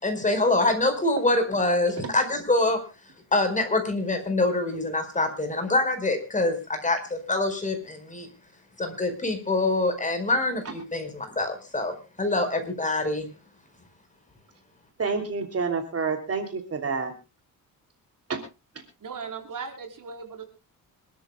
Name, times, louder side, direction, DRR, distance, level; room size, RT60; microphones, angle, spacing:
voice 1, 0.0-2.8 3.3-8.3 8.8-13.3, left 2 dB, 20° left, 6 dB, 4.7 m, -25 dB
voice 2, 15.0-17.1 18.3-18.4, right 5 dB, 40° right, 5 dB, 3.0 m, -28 dB
voice 3, 19.0-20.4, right 5 dB, 60° right, 4 dB, 4.5 m, -37 dB
26.0 x 13.0 x 2.3 m, 0.30 s
cardioid pair, 130°, 36 cm